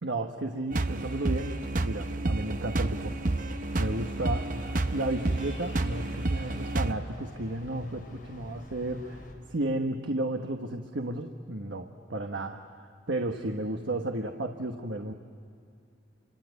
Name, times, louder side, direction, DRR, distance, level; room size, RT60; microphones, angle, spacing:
voice 1, 0.0-3.3 3.8-4.5 4.9-15.1, right 1 dB, 85° right, 4 dB, 1.3 m, -33 dB
sound 1, 0.7-6.9, right 2 dB, 45° right, 0.8 m, -30 dB
sound 2, 0.8-7.0, left 2 dB, 70° left, 7.5 m, -53 dB
Train, 1.5-9.3, left 1 dB, 45° left, 4.8 m, -47 dB
29.0 x 25.0 x 8.2 m, 2.5 s
head